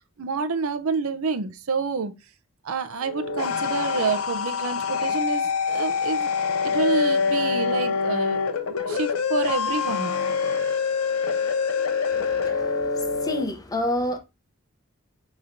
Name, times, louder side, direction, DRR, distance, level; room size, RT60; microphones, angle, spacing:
voice 1, 0.2-2.1 2.6-6.3 6.6-8.4 8.7-10.1, right 4 dB, 75° right, 0.6 m, -28 dB
sound 1, 3.0-13.4, left 5 dB, 75° left, 0.5 m, -25 dB
voice 2, 12.1-14.2, left 1 dB, 20° left, 0.6 m, -29 dB
5.4 x 3.0 x 2.5 m
head